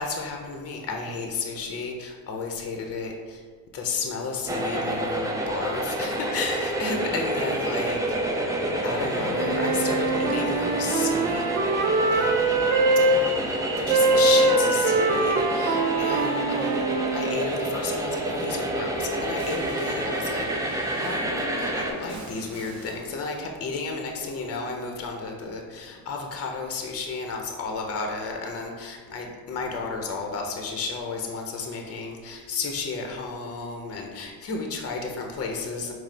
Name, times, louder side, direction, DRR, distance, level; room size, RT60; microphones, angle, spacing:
voice 1, 0.0-3.4 3.7-8.3 8.8-11.5 12.1-12.7 13.1-16.8 17.1-35.9, left 4 dB, 40° left, 2 dB, 0.6 m, -32 dB
sound 1, 4.5-21.9, right 1 dB, 10° right, 0.4 m, -28 dB
Wind instrument woodwind instrument, 9.3-13.2 13.9-17.4, right 3 dB, 85° right, 0.5 m, -23 dB
sound 2, 19.4-23.0 23.9-24.7, equal, 60° right, 1.0 m, -42 dB
4.7 x 2.0 x 3.2 m, 1.5 s
supercardioid pair, 90°, 38 cm